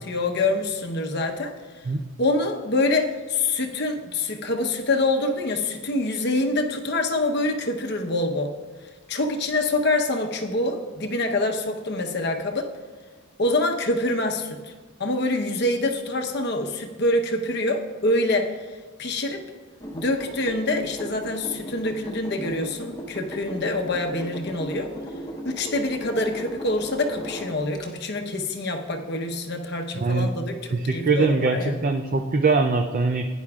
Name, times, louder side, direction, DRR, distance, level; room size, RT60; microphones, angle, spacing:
voice 1, 0.0-1.5 2.2-8.5 9.1-12.7 13.4-14.7 15.0-19.4 19.9-24.9 25.4-31.8, left 2 dB, 55° left, 3 dB, 0.9 m, -25 dB
sound 1, 19.8-27.9, equal, 20° left, 1.1 m, -37 dB
voice 2, 29.9-30.3 30.7-33.2, right 3 dB, 40° right, 5 dB, 0.5 m, -22 dB
16.5 x 10.0 x 2.4 m, 1.4 s
head